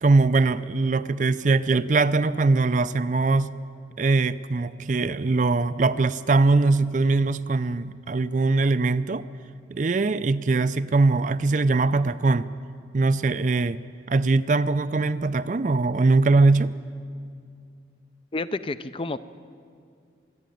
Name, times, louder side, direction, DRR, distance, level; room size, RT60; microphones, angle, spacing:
voice 1, 0.0-3.5 4.0-9.2 9.7-12.5 12.9-13.8 14.1-16.7, right 3 dB, 40° right, 13 dB, 0.5 m, -21 dB
voice 2, 18.3-19.2, left 3 dB, 30° left, 13 dB, 0.5 m, -29 dB
25.5 x 11.0 x 9.2 m, 2.3 s
head